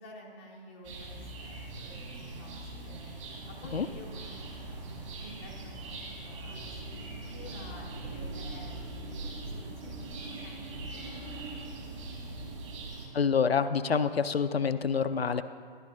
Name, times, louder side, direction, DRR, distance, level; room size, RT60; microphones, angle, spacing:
voice 1, 0.0-12.1, equal, 10° left, -2 dB, 0.6 m, -51 dB
sound 1, 0.8-13.1, right 2 dB, 30° right, 1.8 m, -41 dB
voice 2, 13.1-15.4, left 6 dB, 80° left, 11 dB, 0.5 m, -27 dB
13.5 x 11.0 x 2.6 m, 2.3 s
figure-of-eight pair, 140°, 30 cm